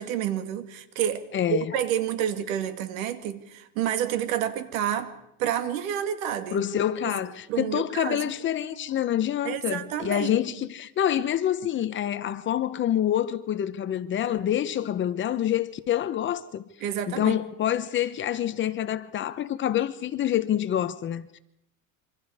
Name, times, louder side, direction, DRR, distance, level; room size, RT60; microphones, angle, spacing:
voice 1, 0.0-5.1 5.4-6.6 7.5-8.3 9.4-10.6 16.8-17.4, right 10 dB, 85° right, 2.4 m, -29 dB
voice 2, 1.3-1.7 6.5-16.6 17.1-21.4, left 11 dB, 30° left, 0.9 m, -27 dB
27.5 x 25.0 x 4.9 m
cardioid pair, 145°, 40 cm